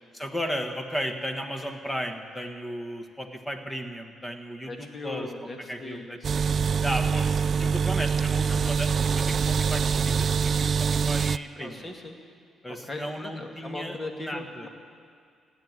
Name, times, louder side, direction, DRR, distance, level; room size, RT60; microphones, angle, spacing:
voice 1, 0.1-5.3 5.7-6.2 6.8-7.3 7.6-11.9 12.6-14.7, equal, 10° left, 5 dB, 1.6 m, -35 dB
voice 2, 4.7-6.2 8.5-8.7 11.6-12.2 12.8-14.7, left 2 dB, 30° left, 2 dB, 2.2 m, -39 dB
sound 1, 6.2-11.4, right 6 dB, 50° right, 0.3 m, -24 dB
16.0 x 9.4 x 9.4 m, 2.3 s
cardioid pair, 90°, 0 cm